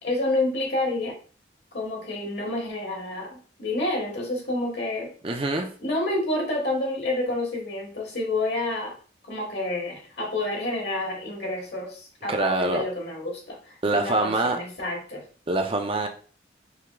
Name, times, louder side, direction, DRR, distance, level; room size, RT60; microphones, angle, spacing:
voice 1, 0.0-1.2 1.7-5.1 5.8-8.9 9.2-15.2, left 2 dB, 65° left, 0 dB, 1.4 m, -29 dB
voice 2, 5.2-5.7 12.3-12.8 13.8-14.6 15.5-16.1, right 2 dB, 30° right, 4 dB, 0.4 m, -24 dB
4.7 x 3.6 x 2.2 m, 0.41 s
head